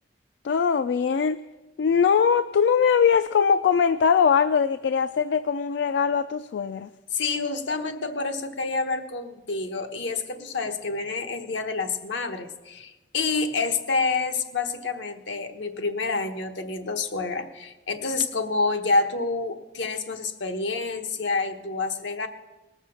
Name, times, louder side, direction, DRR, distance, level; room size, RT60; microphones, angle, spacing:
voice 1, 0.4-1.4 1.8-6.9, left 6 dB, 70° left, 13 dB, 0.3 m, -21 dB
voice 2, 7.1-22.3, left 4 dB, 85° left, 6 dB, 1.1 m, -28 dB
19.0 x 6.6 x 6.3 m, 1.1 s
head